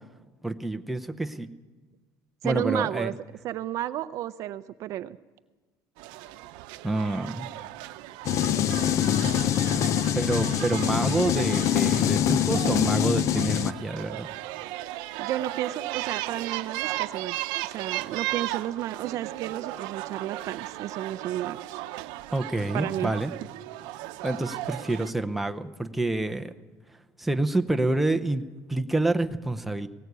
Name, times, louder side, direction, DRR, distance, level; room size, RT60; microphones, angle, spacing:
voice 1, 0.4-1.5 2.4-3.1 6.8-7.5 9.7-9.9 10.1-14.3 22.3-23.3 24.2-26.5 26.9-29.9, right 2 dB, ahead, 6 dB, 0.7 m, -28 dB
voice 2, 2.4-3.1 3.4-5.2 15.2-21.8 22.7-23.1, right 13 dB, 45° right, 14 dB, 0.6 m, -32 dB
sound 1, 6.0-25.1, right 16 dB, 75° right, 0.8 m, -36 dB
sound 2, 8.3-13.7, left 11 dB, 40° left, 0.6 m, -24 dB
19.0 x 18.0 x 8.1 m, 1.3 s
cardioid pair, 170°, 8 cm